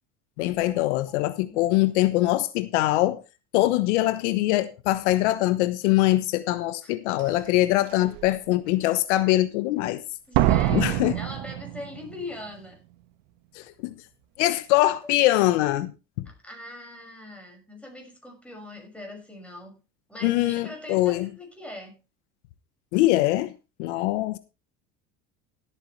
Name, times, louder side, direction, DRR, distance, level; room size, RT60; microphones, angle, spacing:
voice 1, 0.4-3.2 3.5-10.0 10.7-11.2 13.5-13.9 14.4-16.3 20.2-21.3 22.9-23.5 23.8-24.4, left 16 dB, 80° left, 1.1 m, -23 dB
Slam, 7.2-7.3 7.9-8.3 10.3-12.2 12.5-12.6, right 14 dB, 70° right, 1.5 m, -25 dB
voice 2, 10.3-12.8 16.2-19.8 20.1-22.0, left 1 dB, 5° left, 6.2 m, -41 dB
16.5 x 9.0 x 3.3 m
supercardioid pair, 105°, 34 cm